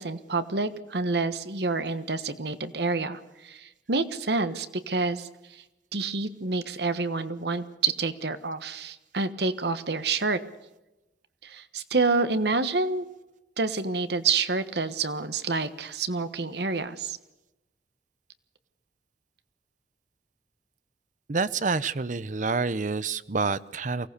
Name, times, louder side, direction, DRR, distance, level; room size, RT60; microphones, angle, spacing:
voice 1, 0.0-5.6 5.9-10.4 11.4-13.1 13.6-17.2, right 3 dB, 70° right, 12 dB, 1.3 m, -28 dB
voice 2, 21.3-24.1, right 4 dB, 45° right, 16 dB, 0.7 m, -28 dB
23.5 x 17.5 x 6.7 m, 0.97 s
head